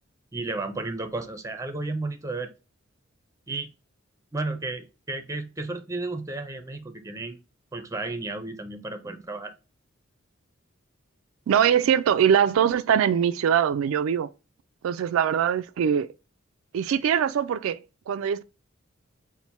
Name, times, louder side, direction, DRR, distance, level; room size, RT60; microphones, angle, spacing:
voice 1, 0.3-2.5 3.5-3.7 4.3-7.4 7.7-9.5, right 2 dB, 15° right, 0.4 m, -33 dB
voice 2, 11.5-14.3 14.8-16.1 16.7-17.8 18.1-18.4, right 8 dB, 90° right, 0.3 m, -22 dB
4.3 x 2.1 x 4.3 m
head